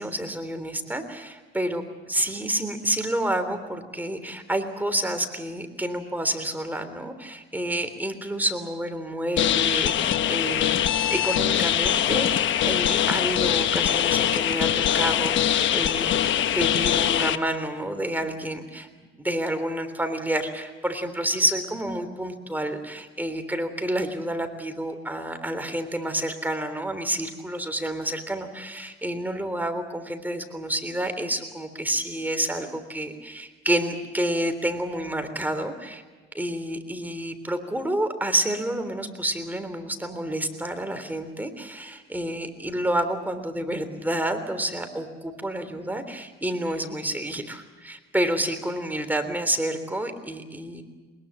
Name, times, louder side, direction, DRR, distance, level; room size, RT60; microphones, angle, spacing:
voice 1, 0.0-16.1 16.6-18.9 19.2-36.0 36.3-50.8, right 1 dB, 10° right, 7 dB, 3.5 m, -29 dB
sound 1, 9.4-17.4, left 10 dB, 75° left, 1.1 m, -23 dB
23.0 x 21.5 x 7.5 m, 1.3 s
cardioid pair, 90°, 20 cm